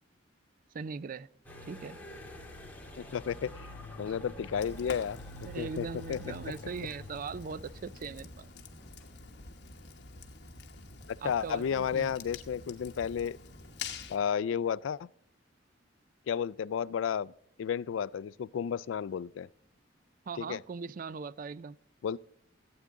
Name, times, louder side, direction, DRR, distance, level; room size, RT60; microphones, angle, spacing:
voice 1, 0.7-1.3 1.7-2.0 5.4-8.5 11.2-12.2 20.3-21.8, right 5 dB, 45° right, 0.4 m, -40 dB
sound 1, 1.4-9.0, left 1 dB, 10° left, 1.9 m, -48 dB
voice 2, 3.0-3.7 4.0-6.2 6.4-6.5 11.2-13.4 14.1-15.1 16.3-17.3 17.6-19.5 20.4-20.6 22.0-22.2, left 7 dB, 90° left, 0.3 m, -32 dB
Fire, 4.6-14.2, left 4 dB, 60° left, 1.3 m, -47 dB
16.0 x 8.7 x 3.6 m
head